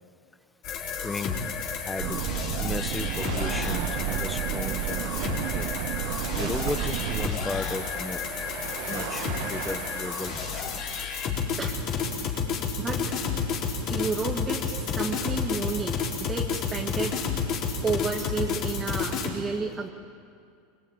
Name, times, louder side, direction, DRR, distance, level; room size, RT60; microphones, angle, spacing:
sound 1, 0.6-19.3, left 6 dB, 40° left, 4.3 m, -31 dB
voice 1, 1.0-1.5 1.8-2.2 2.6-5.7 6.1-8.2 8.9-10.6, left 2 dB, 10° left, 11 dB, 1.1 m, -35 dB
sound 2, 2.0-7.3, right 15 dB, 55° right, 0.7 m, -31 dB
sound 3, 3.2-11.1, right 10 dB, 70° right, 1.8 m, -39 dB
voice 2, 13.9-17.2 17.8-19.9, right 4 dB, 15° right, 1 dB, 1.7 m, -31 dB
24.5 x 24.0 x 8.9 m, 2.3 s
supercardioid pair, 150°, 0 cm